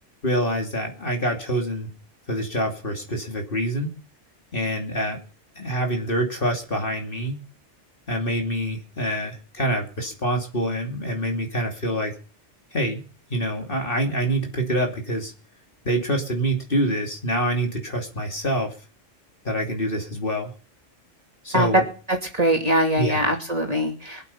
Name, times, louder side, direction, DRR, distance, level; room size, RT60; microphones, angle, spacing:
voice 1, 0.2-1.9 2.3-3.9 4.5-5.2 5.6-7.4 8.1-12.1 12.7-13.0 13.3-15.3 15.8-18.7 19.4-20.5 21.4-21.8 23.0-23.2, right 1 dB, 45° left, 2 dB, 2.9 m, -26 dB
voice 2, 22.1-24.2, right 1 dB, 30° right, 2 dB, 2.8 m, -22 dB
22.5 x 8.4 x 5.7 m, 0.38 s
omnidirectional pair, 1.2 m